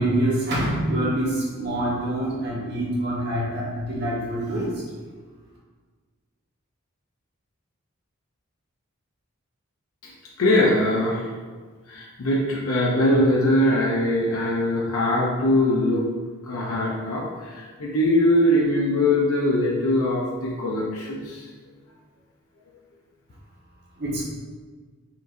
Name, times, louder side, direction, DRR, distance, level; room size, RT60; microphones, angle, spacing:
voice 1, 0.0-4.7 24.0-24.2, right 1 dB, 50° right, -6 dB, 1.3 m, -25 dB
voice 2, 10.4-11.3 11.9-16.1 16.4-21.5, left 1 dB, 80° left, -4 dB, 0.6 m, -22 dB
4.4 x 3.8 x 2.6 m, 1.5 s
head